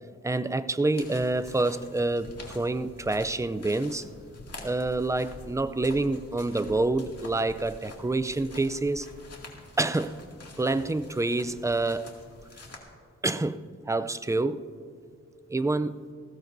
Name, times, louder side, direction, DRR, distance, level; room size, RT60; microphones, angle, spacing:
voice 1, 0.2-4.1 4.6-9.1 9.8-10.2 10.6-12.2 13.2-14.6 15.5-16.0, right 2 dB, 10° right, 0.4 m, -27 dB
sound 1, 0.9-12.8, left 2 dB, 55° left, 2.3 m, -46 dB
19.5 x 15.5 x 2.7 m
wide cardioid pair, 95°, 29 cm